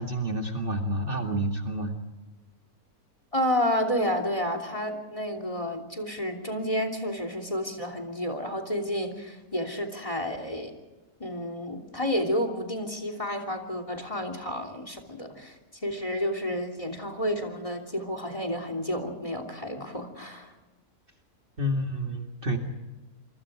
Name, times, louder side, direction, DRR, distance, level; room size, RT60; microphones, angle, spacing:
voice 1, 0.0-2.0 21.6-22.6, right 1 dB, 35° right, 2 dB, 2.4 m, -29 dB
voice 2, 3.3-10.7 11.2-15.5 15.8-20.5, equal, 20° left, 7 dB, 3.1 m, -30 dB
27.5 x 24.5 x 5.0 m, 1.1 s
omnidirectional pair, 1.6 m